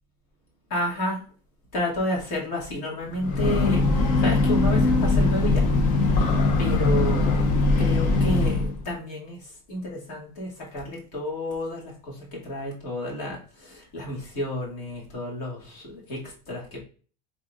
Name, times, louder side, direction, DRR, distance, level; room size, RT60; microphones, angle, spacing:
voice 1, 0.7-1.2 1.7-5.7 6.1-6.2 6.6-7.5 7.8-16.8, left 1 dB, 65° left, -3 dB, 2.2 m, -31 dB
Breathing / Train, 3.1-8.8, left 3 dB, 40° left, 0.6 m, -21 dB
5.9 x 3.6 x 2.4 m, 0.41 s
cardioid pair, 175°, 20 cm